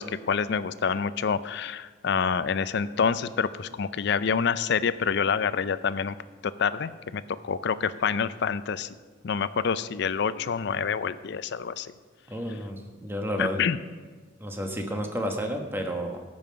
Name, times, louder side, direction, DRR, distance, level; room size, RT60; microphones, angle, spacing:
voice 1, 0.0-6.1 6.6-8.9 9.2-11.9 13.4-13.8, left 6 dB, 60° left, 15 dB, 0.4 m, -27 dB
voice 2, 12.3-13.6 14.4-16.2, equal, 10° right, 3 dB, 1.1 m, -31 dB
13.5 x 5.5 x 6.7 m, 1.4 s
head